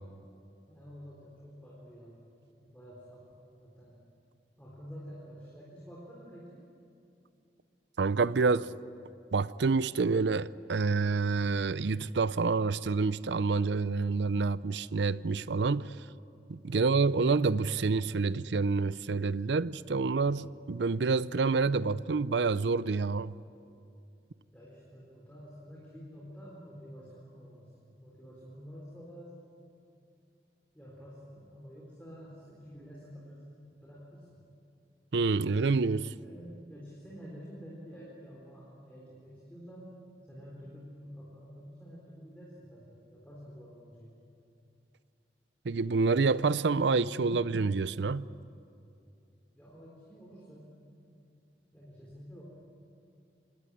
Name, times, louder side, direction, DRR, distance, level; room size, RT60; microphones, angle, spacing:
voice 1, 0.7-4.0 4.6-6.7 24.5-29.3 30.7-34.4 36.1-39.9 40.3-44.2 49.5-50.8 51.7-52.4, equal, 10° left, 4.0 m, -49 dB
voice 2, 8.0-8.7 9.3-15.9 16.5-23.3 35.1-36.1 45.6-48.3, right 4 dB, 80° right, 0.5 m, -28 dB
26.0 x 19.5 x 10.0 m
head